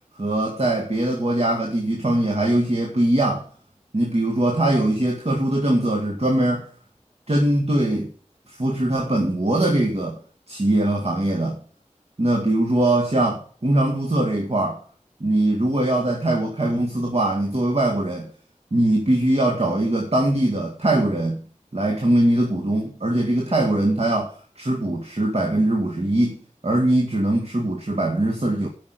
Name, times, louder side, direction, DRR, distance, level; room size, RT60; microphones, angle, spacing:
voice 1, 0.2-3.5 3.9-6.7 7.3-8.1 8.6-10.2 10.5-11.6 12.2-14.8 15.2-18.3 18.7-21.4 21.7-28.7, right 1 dB, 55° right, 0 dB, 1.9 m, -21 dB
8.3 x 6.1 x 7.8 m, 0.43 s
wide cardioid pair, 45°, 13 cm